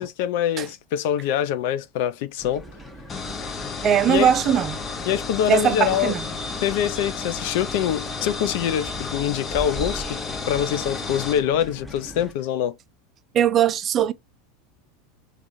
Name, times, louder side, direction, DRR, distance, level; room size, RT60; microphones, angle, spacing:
voice 1, 0.0-2.6 4.1-4.3 5.1-6.1 6.6-12.8, left 10 dB, 60° left, 0.5 m, -24 dB
sound 1, 2.4-12.3, right 1 dB, 5° left, 1.0 m, -40 dB
sound 2, 3.1-11.4, left 4 dB, 30° left, 0.9 m, -32 dB
voice 2, 3.8-4.8 5.5-6.2 13.3-14.1, right 9 dB, 35° right, 0.4 m, -20 dB
4.8 x 2.4 x 2.6 m
hypercardioid pair, 85°, 0 cm